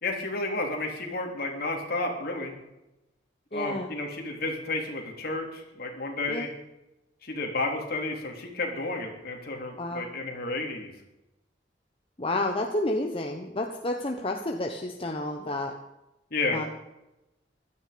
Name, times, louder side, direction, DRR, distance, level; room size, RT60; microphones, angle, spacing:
voice 1, 0.0-2.6 3.5-6.5 7.2-10.9 16.3-16.7, left 2 dB, 55° left, 1 dB, 3.5 m, -31 dB
voice 2, 3.5-3.9 6.3-6.5 9.8-10.0 12.2-15.7 16.5-16.6, left 1 dB, 30° left, 3 dB, 1.2 m, -30 dB
16.5 x 13.0 x 5.3 m, 0.94 s
head